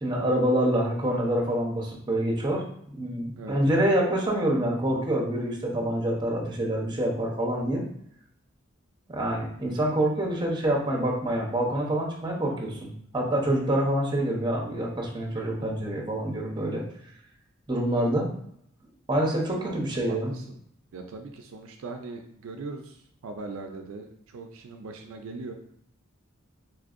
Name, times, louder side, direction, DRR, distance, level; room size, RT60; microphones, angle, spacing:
voice 1, 0.0-2.6 2.9-7.8 9.1-16.8 17.7-18.3 19.1-20.3, right 1 dB, 20° right, -2 dB, 0.7 m, -26 dB
voice 2, 3.4-3.8 19.6-20.6 20.9-25.5, right 3 dB, 70° right, 4 dB, 0.4 m, -40 dB
4.2 x 2.6 x 2.4 m, 0.70 s
head